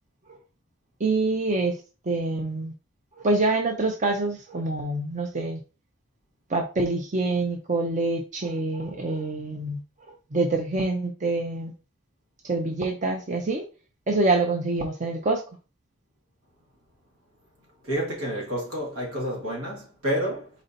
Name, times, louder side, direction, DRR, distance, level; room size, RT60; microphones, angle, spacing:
voice 1, 1.0-1.7 2.1-2.7 3.2-5.6 6.5-9.8 10.3-11.7 12.4-13.6 14.1-15.4, right 2 dB, 35° right, 0.5 m, -26 dB
voice 2, 17.8-20.5, equal, 80° right, 1.9 m, -29 dB
4.3 x 2.7 x 3.8 m
head